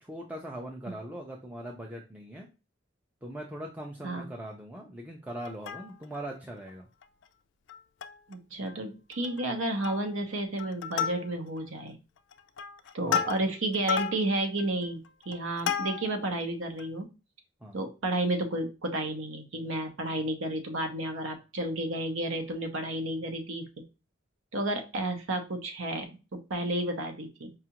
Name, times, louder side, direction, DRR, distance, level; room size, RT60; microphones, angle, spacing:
voice 1, 0.0-2.5 3.2-6.9 13.1-13.3 17.6-17.8, right 1 dB, 5° right, 0 dB, 0.4 m, -41 dB
Plucked string instrument, 5.4-6.2 6.7-6.8 7.0-7.2 7.7-8.3 8.7-8.8 9.1-9.5 9.8-10.2 10.6-11.6 12.2-16.3 16.8-16.9, left 7 dB, 60° left, 0.3 m, -33 dB
voice 2, 8.3-12.0 12.9-17.1 17.7-23.7 24.5-27.5, right 1 dB, 80° right, 4 dB, 0.7 m, -32 dB
4.8 x 2.4 x 2.9 m, 0.29 s
head